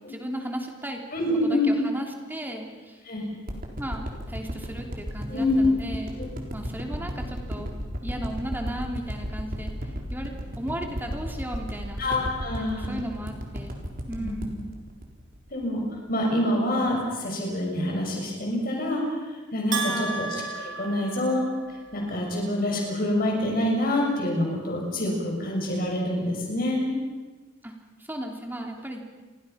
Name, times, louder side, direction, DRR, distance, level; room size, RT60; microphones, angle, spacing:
voice 1, 0.1-1.0 1.4-3.0 3.8-6.2 6.5-7.7 8.0-9.7 10.1-12.0 12.6-13.7 14.1-14.7 19.9-20.3 27.6-27.7 28.0-29.0, right 1 dB, 10° right, 2 dB, 3.2 m, -35 dB
voice 2, 1.1-1.7 3.0-3.2 5.3-5.6 6.2-6.3 12.0-12.9 14.2-14.4 15.5-15.8 16.1-19.0 19.5-20.4 20.8-21.4 21.9-27.0, left 1 dB, 45° left, -1 dB, 6.4 m, -26 dB
sound 1, 3.5-15.8 16.2-16.3, equal, 45° right, 3.7 m, -34 dB
Bell, 19.7-21.9, right 3 dB, 70° right, 3.8 m, -32 dB
29.5 x 23.0 x 5.8 m, 1.3 s
head